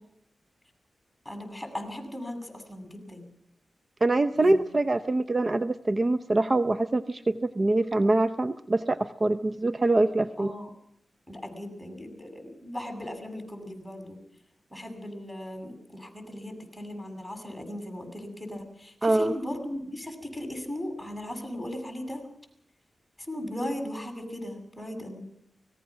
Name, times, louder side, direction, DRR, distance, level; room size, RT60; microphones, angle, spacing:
voice 1, 1.3-3.2 4.4-4.6 10.4-10.7 11.3-14.2 14.7-22.2 23.3-25.2, left 1 dB, 5° left, 5 dB, 7.2 m, -37 dB
voice 2, 4.0-10.5 19.0-19.3, right 2 dB, 40° right, 10 dB, 0.8 m, -24 dB
24.5 x 19.5 x 6.1 m, 0.73 s
cardioid pair, 60°, 0 cm